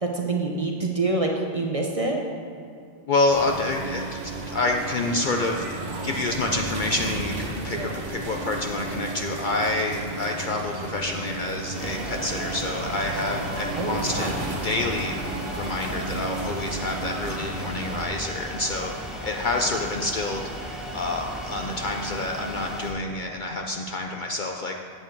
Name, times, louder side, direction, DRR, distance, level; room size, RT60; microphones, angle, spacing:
voice 1, 0.0-2.2 13.8-14.3, right 2 dB, 35° right, 0 dB, 0.7 m, -26 dB
voice 2, 3.1-4.0 4.4-5.7 6.0-15.2 15.5-18.9 19.2-20.5 20.9-24.7, left 2 dB, 55° left, 2 dB, 0.6 m, -28 dB
sound 1, 3.3-18.1, right 2 dB, 80° right, 1.4 m, -33 dB
sound 2, 11.7-22.9, equal, ahead, 1.1 m, -36 dB
8.3 x 7.8 x 4.5 m, 2.4 s
omnidirectional pair, 1.2 m